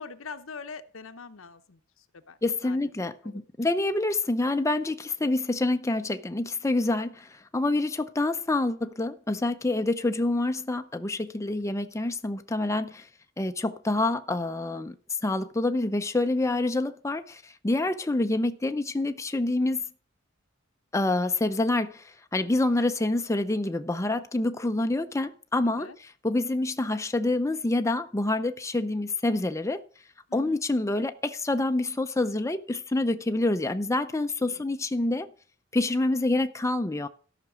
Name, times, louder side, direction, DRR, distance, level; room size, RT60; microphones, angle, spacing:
voice 1, 0.0-2.9 11.5-11.7 25.6-26.0 30.3-30.6 34.4-34.6, left 4 dB, 85° left, 0.9 m, -44 dB
voice 2, 2.4-13.1 13.4-14.9 15.2-19.8 20.9-29.8 30.3-35.3 35.7-37.1, left 2 dB, 15° left, 0.5 m, -27 dB
13.5 x 5.9 x 6.1 m
head